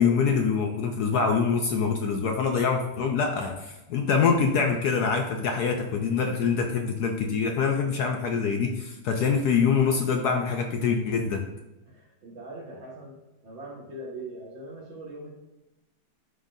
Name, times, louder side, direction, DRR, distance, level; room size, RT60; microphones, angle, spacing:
voice 1, 0.0-11.5, left 5 dB, 70° left, 3 dB, 1.0 m, -25 dB
voice 2, 11.9-13.2 13.4-15.3, right 1 dB, 75° right, -4 dB, 2.6 m, -41 dB
11.0 x 3.8 x 2.7 m, 0.99 s
omnidirectional pair, 2.1 m